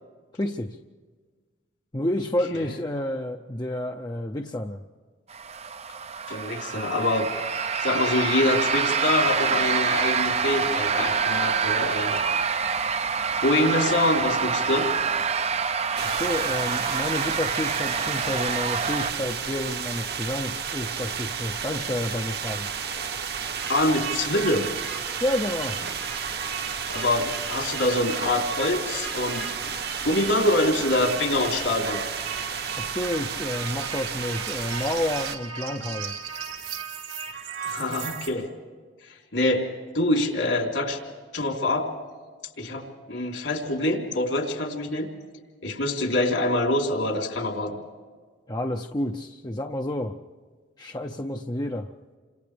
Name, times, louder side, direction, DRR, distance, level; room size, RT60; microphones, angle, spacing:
voice 1, 0.4-0.8 1.9-4.8 16.0-22.7 25.2-25.8 32.8-36.1 48.5-50.2 50.8-51.9, left 1 dB, 20° left, 2 dB, 0.6 m, -30 dB
sound 1, 5.3-19.1, right 6 dB, 35° right, 0.6 m, -26 dB
voice 2, 6.3-7.3 7.8-12.2 13.4-14.9 23.7-24.7 26.9-29.8 30.0-32.0 37.6-38.5 39.1-39.7 39.9-41.0 41.3-41.9 42.6-45.1 45.6-47.8, left 2 dB, 80° left, 1 dB, 3.7 m, -25 dB
sound 2, 16.0-35.4, right 6 dB, 60° right, 1.3 m, -32 dB
sound 3, 23.6-38.3, right 6 dB, 85° right, 3.6 m, -37 dB
30.0 x 26.5 x 3.4 m, 1.5 s
head